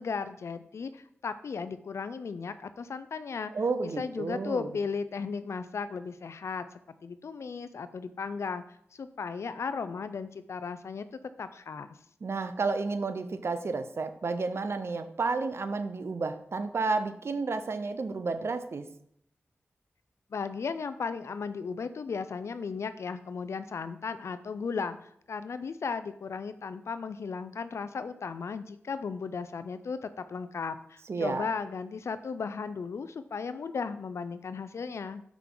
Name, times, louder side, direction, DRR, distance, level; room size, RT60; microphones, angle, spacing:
voice 1, 0.0-3.5 4.0-6.7 7.0-8.6 8.9-11.0 11.4-12.0 20.3-35.2, left 5 dB, 75° left, 12 dB, 0.4 m, -35 dB
voice 2, 3.5-4.8 12.2-18.9 31.1-31.5, right 4 dB, 65° right, 10 dB, 0.6 m, -31 dB
5.9 x 5.7 x 3.8 m, 0.69 s
cardioid pair, 45°, 5 cm